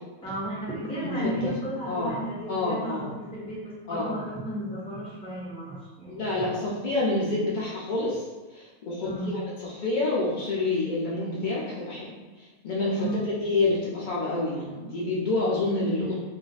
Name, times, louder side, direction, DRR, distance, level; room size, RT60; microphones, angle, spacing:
voice 1, 0.2-6.7 9.0-9.4 13.0-13.3 16.0-16.2, right 1 dB, 5° left, -9 dB, 1.1 m, -34 dB
voice 2, 1.0-1.5 1.9-2.2 2.5-3.0 3.9-4.1 6.1-8.2 8.5-13.1 13.4-16.1, left 2 dB, 85° left, -5 dB, 0.4 m, -28 dB
2.6 x 2.3 x 4.0 m, 1.2 s
omnidirectional pair, 1.5 m